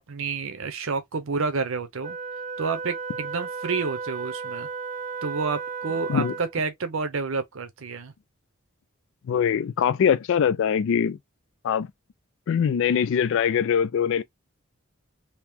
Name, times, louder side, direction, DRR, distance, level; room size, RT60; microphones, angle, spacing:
voice 1, 0.0-2.2 2.6-4.7 5.2-8.1, right 4 dB, 70° right, 0.7 m, -29 dB
Wind instrument woodwind instrument, 2.0-6.6, right 5 dB, 35° right, 0.5 m, -34 dB
voice 2, 9.3-11.2 11.6-11.9 12.5-14.2, left 7 dB, 65° left, 0.3 m, -22 dB
2.9 x 2.9 x 3.5 m
head